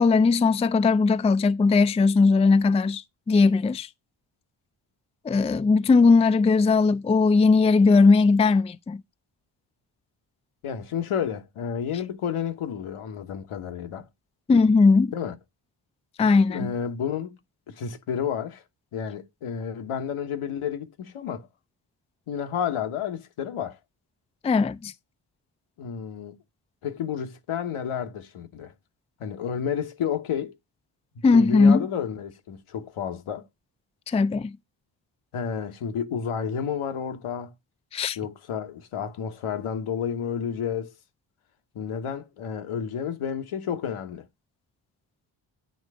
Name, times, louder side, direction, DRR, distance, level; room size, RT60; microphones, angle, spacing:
voice 1, 0.0-3.9 5.2-9.0 14.5-15.1 16.2-16.7 24.4-24.9 31.2-31.9 34.1-34.6 37.9-38.2, left 4 dB, 15° left, 0.3 m, -19 dB
voice 2, 10.6-14.1 15.1-15.3 16.5-17.4 17.7-18.6 18.9-21.5 22.3-23.8 25.8-26.4 26.8-28.7 29.2-30.6 31.3-33.5 35.3-37.5 38.2-40.9 41.7-44.3, left 7 dB, 85° left, 1.3 m, -31 dB
9.1 x 3.2 x 4.8 m
cardioid pair, 65°, 49 cm